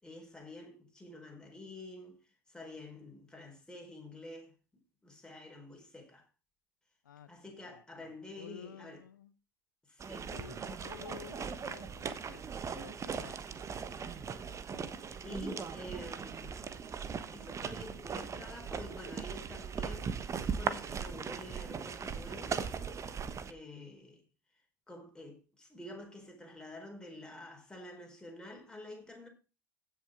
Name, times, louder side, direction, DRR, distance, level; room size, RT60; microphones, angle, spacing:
voice 1, 0.0-2.2 2.5-4.5 5.0-6.3 7.3-9.0 9.9-10.3 13.2-13.4 13.9-14.2 15.2-16.7 17.3-22.6 23.5-24.2 24.9-29.3, left 1 dB, 10° left, 4.7 m, -49 dB
voice 2, 7.0-9.3 10.3-13.3, left 9 dB, 75° left, 1.1 m, -52 dB
sound 1, 10.0-23.5, right 6 dB, 30° right, 1.3 m, -39 dB
16.0 x 6.9 x 3.7 m
figure-of-eight pair, 65°, 11 cm